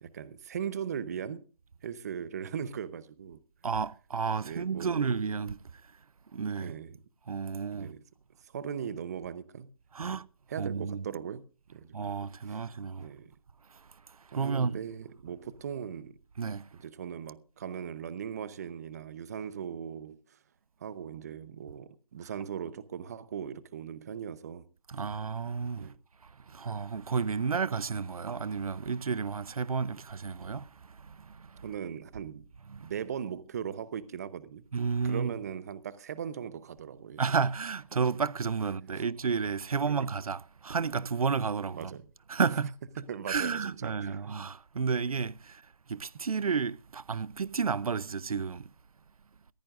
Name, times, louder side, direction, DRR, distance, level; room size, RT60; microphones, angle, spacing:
voice 1, 0.0-1.4 1.8-3.4 4.4-5.1 6.6-7.0 7.7-8.0 8.4-9.7 10.0-10.2 10.5-11.4 11.7-12.0 13.0-13.3 14.3-16.2 16.7-20.4 20.8-24.6 25.8-26.0 31.6-32.5 32.8-34.6 35.0-37.2 38.9-39.0 39.8-40.0 41.7-42.0 43.0-44.4, right 8 dB, 30° right, 0.7 m, -39 dB
voice 2, 3.6-5.6 6.3-6.7 7.3-7.9 9.9-10.2 10.6-11.0 11.9-13.1 14.3-14.8 16.4-16.6 24.9-25.9 26.5-30.7 31.1-31.6 32.7-32.9 34.7-35.3 37.2-41.9 42.3-42.8 43.3-45.6 45.9-48.7, right 5 dB, 75° right, 0.7 m, -31 dB
18.5 x 15.5 x 2.5 m
hypercardioid pair, 165°, 18 cm